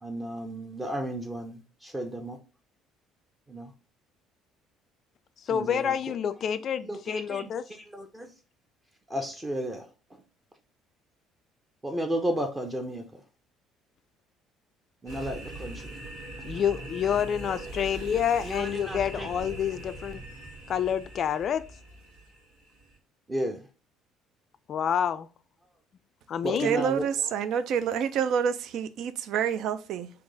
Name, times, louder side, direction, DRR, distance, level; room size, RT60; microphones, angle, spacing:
voice 1, 0.0-2.4 3.5-3.7 5.5-5.9 6.8-8.3 9.1-10.2 11.8-13.2 15.0-16.0 18.1-19.3 23.3-23.7 26.4-27.1, right 1 dB, 20° right, 0.7 m, -34 dB
voice 2, 5.5-7.7 16.4-20.2 20.7-21.7 24.7-25.3 26.3-26.7, left 8 dB, 50° left, 0.3 m, -28 dB
sound 1, 15.1-23.0, right 2 dB, 80° right, 1.6 m, -41 dB
voice 3, 26.6-30.1, right 8 dB, 60° right, 0.4 m, -28 dB
3.7 x 2.7 x 3.8 m
figure-of-eight pair, 55°, 0 cm